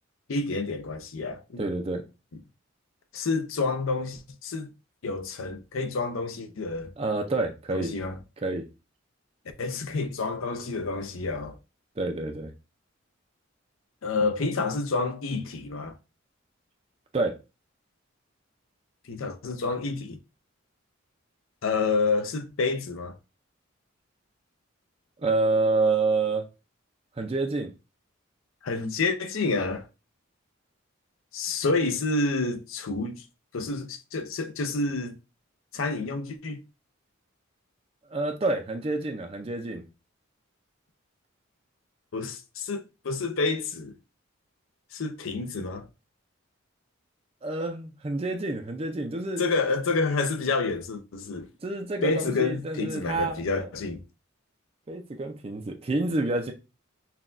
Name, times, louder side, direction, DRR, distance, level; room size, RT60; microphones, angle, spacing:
voice 1, 0.3-1.6 3.1-4.7 5.0-6.9 7.7-8.2 9.6-11.6 14.0-15.9 19.1-20.2 21.6-23.2 28.6-29.9 31.3-33.3 33.5-35.2 35.7-36.6 42.1-43.9 44.9-45.8 49.4-51.5 52.0-54.0, left 3 dB, 75° left, 0.6 m, -29 dB
voice 2, 1.6-2.0 7.0-7.9 8.4-8.7 12.0-12.5 17.1-17.3 25.2-26.5 27.2-27.7 38.1-39.9 47.4-49.4 51.6-53.4 54.9-56.5, right 3 dB, 30° right, 0.4 m, -28 dB
5.7 x 2.3 x 2.5 m
head